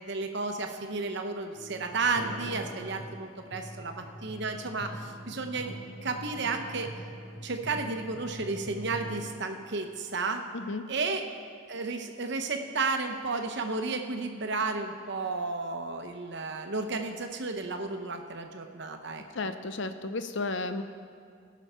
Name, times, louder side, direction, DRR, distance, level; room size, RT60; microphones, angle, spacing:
voice 1, 0.0-5.7 6.0-6.9 7.4-10.4 10.9-11.2 11.7-19.5, right 3 dB, 55° right, 5 dB, 0.9 m, -33 dB
sound 1, 1.5-9.3, right 1 dB, 85° left, 3.6 m, -43 dB
voice 2, 10.5-10.9 19.3-20.8, left 3 dB, 60° left, 9 dB, 0.7 m, -33 dB
18.0 x 6.3 x 5.6 m, 2.2 s
head